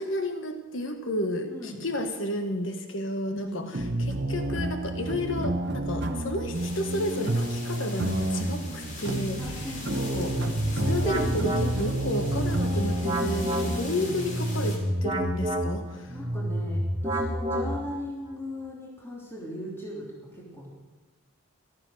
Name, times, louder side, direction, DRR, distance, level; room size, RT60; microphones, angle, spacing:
voice 1, 0.0-10.3 10.7-16.2, left 1 dB, 65° left, 6 dB, 1.3 m, -32 dB
voice 2, 3.3-4.0 9.4-10.3 13.7-14.1 16.1-20.0 20.3-20.7, left 1 dB, 10° left, -4 dB, 2.9 m, -38 dB
sound 1, 3.7-16.6, right 1 dB, 55° right, 1.0 m, -31 dB
sound 2, 6.5-14.8, left 2 dB, 35° left, 2.7 m, -42 dB
sound 3, 10.1-18.1, equal, 20° right, 1.2 m, -29 dB
14.0 x 13.0 x 6.4 m, 1.2 s
head